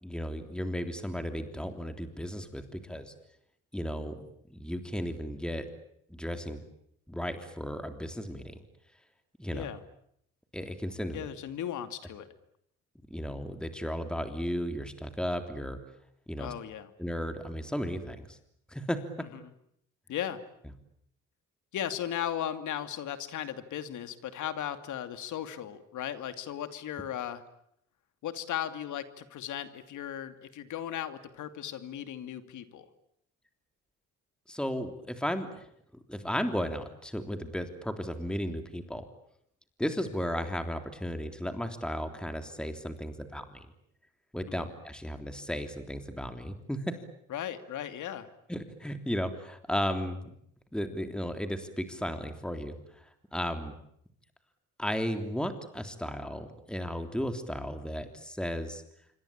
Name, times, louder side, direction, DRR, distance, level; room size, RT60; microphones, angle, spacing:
voice 1, 0.0-3.1 3.7-5.7 6.1-6.6 7.1-8.6 9.4-9.6 10.5-11.3 13.1-15.8 16.3-16.5 17.0-18.4 18.7-19.0 34.5-39.0 39.8-43.7 44.3-47.0 48.5-50.3 50.7-53.8 54.8-58.8, equal, 5° left, 7 dB, 3.4 m, -35 dB
voice 2, 11.1-12.3 16.4-16.9 20.1-20.4 21.7-27.4 28.2-32.9 47.3-48.3, left 10 dB, 75° left, 10 dB, 2.6 m, -36 dB
27.5 x 24.5 x 8.9 m, 0.72 s
cardioid pair, 90°, 30 cm